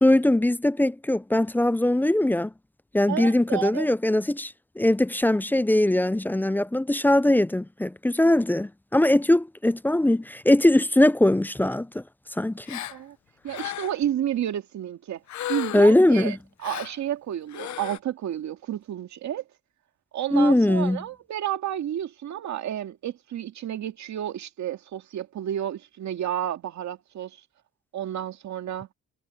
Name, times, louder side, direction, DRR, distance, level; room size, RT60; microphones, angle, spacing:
voice 1, 0.0-2.5 2.9-12.0 12.4-12.8 15.7-16.4 20.3-21.0, left 1 dB, 5° left, 0.4 m, -21 dB
voice 2, 3.1-3.9 12.9-13.2 13.4-15.2 15.5-16.4 16.6-19.4 20.1-27.4 27.9-28.9, right 11 dB, 70° right, 2.2 m, -31 dB
Gasp, 12.7-13.0 13.5-14.1 15.3-16.0 16.6-17.0 17.5-18.0, left 13 dB, 70° left, 0.9 m, -34 dB
cardioid pair, 90°, 30 cm